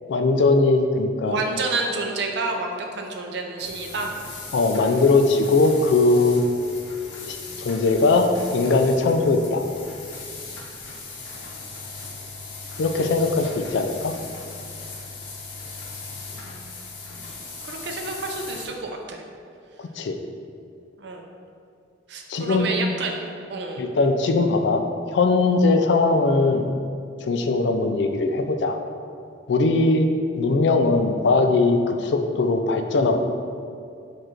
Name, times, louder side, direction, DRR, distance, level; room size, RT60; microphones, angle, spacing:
voice 1, 0.1-1.4 4.5-6.4 7.3-9.6 12.8-14.1 20.0-20.2 22.3-22.7 23.8-24.8 25.1-26.7 27.2-28.8 29.5-30.1 30.3-33.2, left 3 dB, 65° left, 6 dB, 0.3 m, -20 dB
voice 2, 1.3-4.1 16.4-17.3 17.6-19.2 21.0-21.2 22.1-23.2 23.5-23.8, right 3 dB, 60° right, 2 dB, 0.5 m, -29 dB
sound 1, 3.6-18.7, left 3 dB, 85° left, 0.8 m, -38 dB
4.7 x 2.5 x 4.4 m, 2.4 s
head